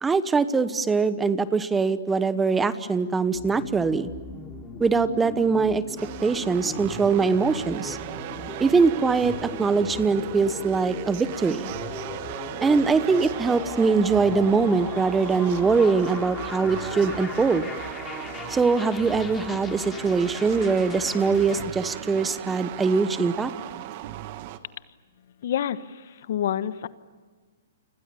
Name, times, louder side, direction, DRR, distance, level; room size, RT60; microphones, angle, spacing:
voice 1, 0.0-4.1 4.8-5.8 6.2-8.0 8.6-11.7 12.6-17.7 18.5-23.5, right 4 dB, 10° right, 14 dB, 1.1 m, -22 dB
sound 1, 3.3-21.6, left 5 dB, 15° left, 2.8 m, -39 dB
sound 2, 6.0-24.6, right 13 dB, 45° right, 1.6 m, -37 dB
voice 2, 25.4-26.9, left 10 dB, 60° left, 14 dB, 1.2 m, -28 dB
29.5 x 26.0 x 7.1 m, 1.5 s
hypercardioid pair, 140°, 0 cm